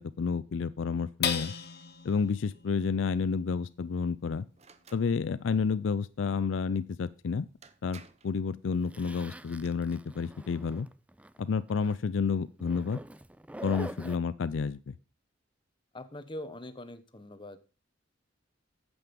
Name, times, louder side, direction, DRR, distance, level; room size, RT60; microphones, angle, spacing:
voice 1, 0.0-1.5 2.0-4.5 4.9-7.5 7.8-10.9 11.4-13.0 13.6-14.9, left 5 dB, 70° left, 16 dB, 0.4 m, -30 dB
sound 1, 1.2-7.9 8.4-8.5 8.9-9.4, left 7 dB, 55° left, 1.2 m, -40 dB
sound 2, 4.6-5.1 7.1-7.2 7.6-8.4 9.3-9.7, right 5 dB, 35° right, 0.8 m, -54 dB
Zipper (clothing), 8.9-11.4 11.7-12.0 12.6-14.2, right 1 dB, 5° right, 0.4 m, -45 dB
voice 2, 15.9-17.6, left 1 dB, 25° left, 10 dB, 1.0 m, -42 dB
9.2 x 8.0 x 5.2 m, 0.34 s
head